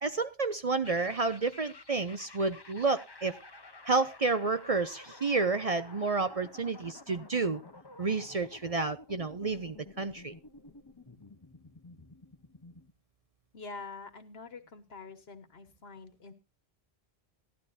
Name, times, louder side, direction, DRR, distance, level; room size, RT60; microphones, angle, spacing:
voice 1, 0.0-3.4 3.9-7.6 8.0-10.3, right 3 dB, 40° right, 11 dB, 0.7 m, -30 dB
sound 1, 0.8-12.9, left 2 dB, 25° left, 1.0 m, -52 dB
voice 2, 13.5-16.3, left 4 dB, 75° left, 10 dB, 1.6 m, -46 dB
16.0 x 12.0 x 2.7 m, 0.27 s
omnidirectional pair, 1.0 m